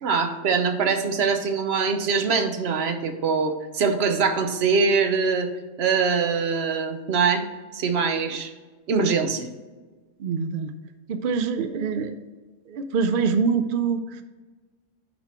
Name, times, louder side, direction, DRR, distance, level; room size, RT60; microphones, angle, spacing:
voice 1, 0.0-5.5 5.8-7.4 7.7-8.5 8.9-9.5, right 5 dB, 55° right, 7 dB, 0.9 m, -23 dB
voice 2, 10.2-10.7 11.1-12.1 12.7-14.2, right 5 dB, 70° right, 9 dB, 0.5 m, -25 dB
10.0 x 4.2 x 4.3 m, 1.3 s
omnidirectional pair, 1.5 m